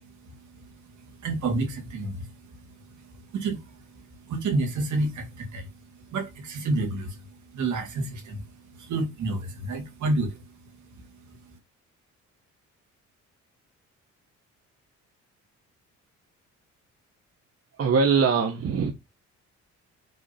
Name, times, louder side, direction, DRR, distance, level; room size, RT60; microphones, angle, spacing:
voice 1, 0.0-5.7 6.0-10.6 10.9-11.6, right 2 dB, 75° right, 2.5 m, -31 dB
voice 2, 17.7-18.9, right 5 dB, 50° right, 1.1 m, -22 dB
6.3 x 3.7 x 4.2 m
cardioid pair, 90°, 30 cm